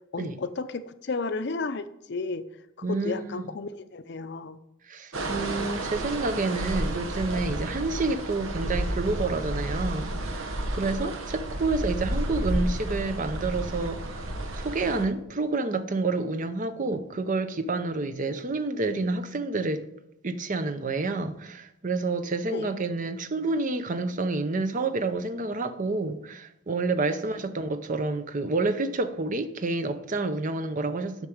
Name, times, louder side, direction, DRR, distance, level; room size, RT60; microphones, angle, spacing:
voice 1, 0.1-2.4 2.9-4.6 11.0-11.1 22.5-22.7 27.2-27.3, left 3 dB, 55° left, 0.6 m, -33 dB
voice 2, 2.8-3.5 4.9-19.9 20.2-31.3, right 3 dB, 40° right, 0.7 m, -29 dB
sound 1, 5.1-15.0, right 1 dB, 85° right, 1.3 m, -31 dB
8.0 x 6.0 x 7.1 m
head